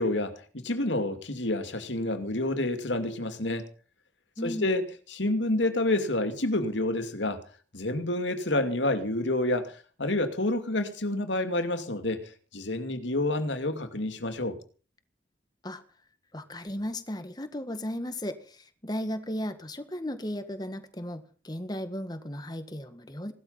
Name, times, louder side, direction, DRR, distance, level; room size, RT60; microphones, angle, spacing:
voice 1, 0.0-3.7 4.4-7.4 7.7-9.7 10.0-14.6, left 2 dB, 85° left, 2.5 m, -28 dB
voice 2, 4.4-4.7 15.6-15.8 16.3-23.3, left 1 dB, 20° left, 1.6 m, -35 dB
17.5 x 13.0 x 5.6 m
head